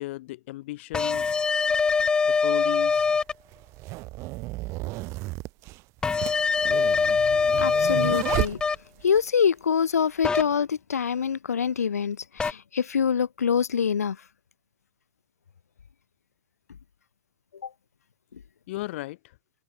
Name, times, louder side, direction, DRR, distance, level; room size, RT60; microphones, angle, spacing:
voice 1, 0.0-1.4 2.2-3.1 18.7-19.2, left 18 dB, 50° left, 4.7 m, -35 dB
sound 1, 0.9-3.3 6.0-8.8 10.2-10.4 12.4-12.5, left 5 dB, 10° left, 0.5 m, -23 dB
sound 2, 1.8-1.9 2.8-9.2, right 21 dB, 35° right, 1.9 m, -33 dB
voice 2, 7.6-8.6 9.0-14.2, left 7 dB, 85° left, 0.4 m, -25 dB
hypercardioid pair, 120°, 8 cm